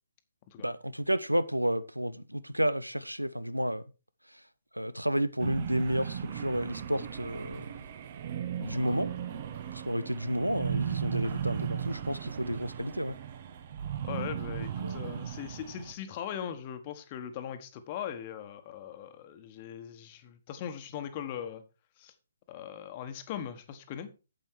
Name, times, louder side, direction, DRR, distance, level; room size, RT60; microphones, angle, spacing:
voice 1, 0.6-3.8 4.7-7.7 8.6-9.1 9.7-13.2 14.8-15.2, equal, 85° right, 0.7 m, -31 dB
sound 1, 5.4-15.9, right 9 dB, 40° right, 1.1 m, -36 dB
voice 2, 14.0-21.6 22.0-22.1 22.5-24.1, left 9 dB, 30° left, 1.3 m, -40 dB
9.2 x 7.8 x 4.6 m
figure-of-eight pair, 130°, 0 cm